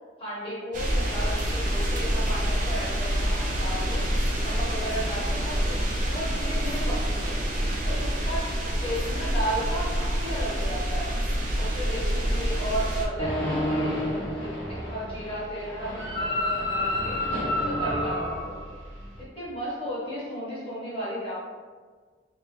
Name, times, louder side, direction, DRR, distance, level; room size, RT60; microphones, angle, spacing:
voice 1, 0.2-4.0 4.4-5.8 6.1-7.4 7.8-8.4 8.8-11.2 11.5-14.0 14.3-17.2 17.7-18.6 19.2-21.3, equal, 30° left, -7 dB, 1.2 m, -34 dB
sound 1, 0.7-13.1, equal, 45° right, 0.5 m, -27 dB
sound 2, 13.2-19.2, left 1 dB, 85° left, 1.0 m, -29 dB
3.3 x 2.7 x 3.2 m, 1.5 s
head